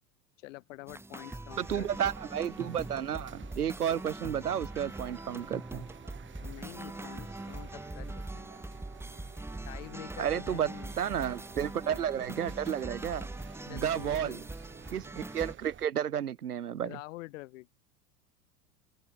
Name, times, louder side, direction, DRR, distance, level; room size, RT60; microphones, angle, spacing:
voice 1, 0.4-1.9 6.4-8.5 9.7-10.9 11.8-12.0 13.7-14.4 16.8-17.7, left 20 dB, 50° left, 2.6 m, -47 dB
sound 1, 0.9-15.5, right 2 dB, 5° right, 3.0 m, -42 dB
sound 2, 1.5-15.9, right 8 dB, 25° right, 5.0 m, -52 dB
voice 2, 1.6-5.9 10.2-10.7 11.0-13.3 13.7-14.4 14.9-17.0, right 9 dB, 70° right, 1.4 m, -32 dB
figure-of-eight pair, 85°, 47 cm